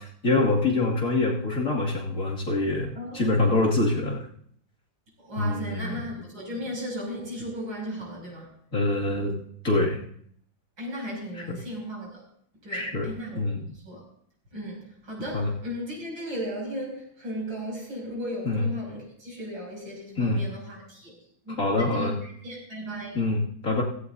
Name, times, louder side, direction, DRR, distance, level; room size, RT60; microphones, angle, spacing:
voice 1, 0.2-4.2 5.4-6.0 8.7-9.3 9.6-10.0 11.4-11.6 12.7-13.1 13.4-13.7 15.3-15.5 18.4-18.7 20.2-20.5 21.6-22.1 23.1-23.8, left 2 dB, 40° left, -3 dB, 2.8 m, -25 dB
voice 2, 2.9-3.5 5.2-8.5 10.8-12.2 12.6-13.4 13.8-14.0 14.5-21.1 21.5-23.2, equal, 70° right, -2 dB, 7.4 m, -36 dB
16.5 x 16.5 x 2.7 m, 0.63 s
omnidirectional pair, 2.1 m